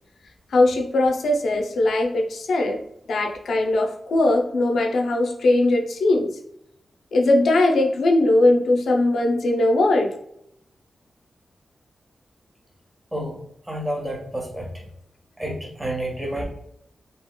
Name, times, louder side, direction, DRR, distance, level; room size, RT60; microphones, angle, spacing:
voice 1, 0.5-2.8 3.1-6.3 7.1-10.1, left 2 dB, 90° left, 3 dB, 0.5 m, -20 dB
voice 2, 13.7-14.7 15.4-16.4, right 1 dB, 15° right, -1 dB, 0.9 m, -29 dB
2.9 x 2.8 x 2.2 m, 0.75 s
cardioid pair, 70°, 0 cm